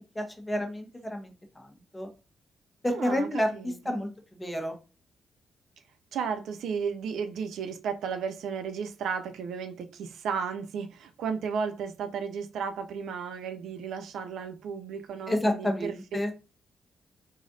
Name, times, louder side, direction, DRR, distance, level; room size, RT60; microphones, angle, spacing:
voice 1, 0.2-1.3 1.9-2.1 2.8-3.5 3.9-4.1 4.4-4.7 15.3-16.3, left 1 dB, 15° left, 1.0 m, -29 dB
voice 2, 2.9-4.1 6.1-16.0, right 6 dB, 80° right, 0.4 m, -34 dB
3.6 x 3.2 x 2.6 m
supercardioid pair, 60°, 0 cm